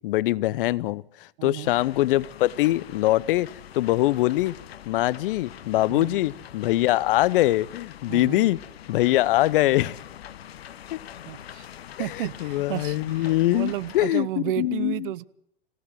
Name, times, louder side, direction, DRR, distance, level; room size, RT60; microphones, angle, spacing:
voice 1, 0.0-3.5 3.7-4.5 4.9-8.6 8.9-10.0 10.9-11.0 12.4-14.9, left 16 dB, 60° left, 22 dB, 0.8 m, -23 dB
voice 2, 1.4-1.8 5.9-6.2 8.1-8.5 11.3-11.7 12.0-15.2, right 15 dB, 55° right, 19 dB, 1.0 m, -32 dB
sound 1, 1.6-14.1, left 10 dB, 75° left, 1.1 m, -44 dB
26.0 x 16.5 x 7.6 m, 0.75 s
hypercardioid pair, 100°, 31 cm